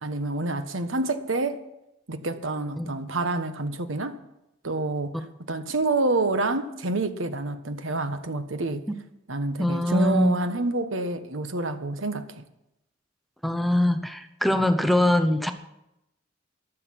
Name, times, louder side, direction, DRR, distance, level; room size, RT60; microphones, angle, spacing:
voice 1, 0.0-1.6 2.1-4.2 4.6-8.8 9.3-12.4, right 2 dB, 85° right, 1.3 m, -28 dB
voice 2, 9.6-10.4 13.4-15.5, left 1 dB, ahead, 0.7 m, -22 dB
15.0 x 12.0 x 5.9 m
head